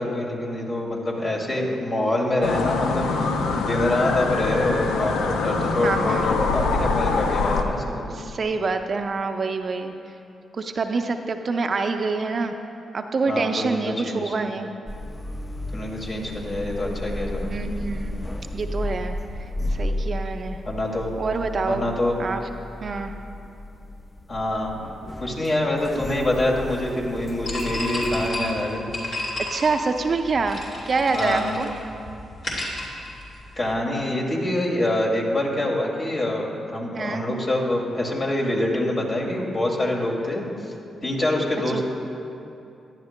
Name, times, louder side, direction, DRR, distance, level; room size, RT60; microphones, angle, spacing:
voice 1, 0.0-8.1 13.3-14.3 15.7-17.5 20.6-21.1 21.7-22.2 24.3-24.8 25.2-28.8 31.1-31.6 33.6-40.7 41.0-41.8, left 1 dB, 45° left, -1 dB, 2.3 m, -25 dB
sound 1, 2.4-7.6, left 4 dB, 80° left, 0.5 m, -24 dB
voice 2, 5.8-6.3 8.1-9.9 10.5-12.5 12.9-14.7 17.4-18.2 18.5-19.2 19.8-20.6 21.2-21.8 22.2-22.4 22.8-23.1 29.5-31.7 36.9-37.2 41.7-41.8, right 4 dB, 50° right, 6 dB, 0.5 m, -26 dB
sound 2, 14.9-28.3, left 1 dB, 25° left, 0.6 m, -33 dB
sound 3, 27.4-33.7, left 1 dB, 60° left, 2.6 m, -32 dB
15.0 x 11.0 x 2.2 m, 2.6 s
supercardioid pair, 45°, 0 cm